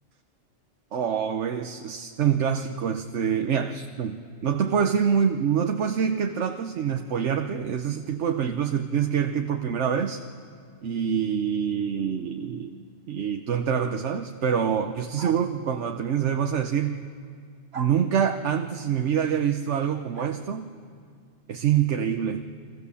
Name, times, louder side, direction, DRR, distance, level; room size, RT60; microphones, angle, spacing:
voice 1, 0.9-10.2 10.8-12.8 13.1-17.0 17.7-20.7 21.5-22.4, right 8 dB, 85° right, 6 dB, 1.2 m, -26 dB
sound 1, 15.2-15.5 17.7-18.0 20.1-20.4, right 5 dB, 65° right, 1.4 m, -38 dB
30.0 x 24.5 x 7.1 m, 2.2 s
omnidirectional pair, 1.2 m